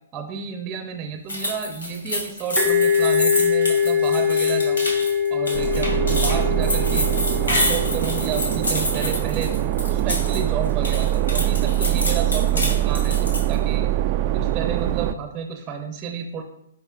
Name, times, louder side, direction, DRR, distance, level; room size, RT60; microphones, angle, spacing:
voice 1, 0.1-4.9 5.3-7.1 7.4-9.5 9.9-13.9 14.3-16.4, right 7 dB, 20° right, 5 dB, 0.7 m, -31 dB
sound 1, 1.3-10.4 10.7-13.5, left 1 dB, 85° left, 2.4 m, -27 dB
sound 2, 2.6-10.1, left 7 dB, 10° left, 1.3 m, -23 dB
sound 3, 5.5-15.1, right 13 dB, 35° right, 0.3 m, -23 dB
10.5 x 5.4 x 2.4 m, 0.81 s
hypercardioid pair, 130°, 0 cm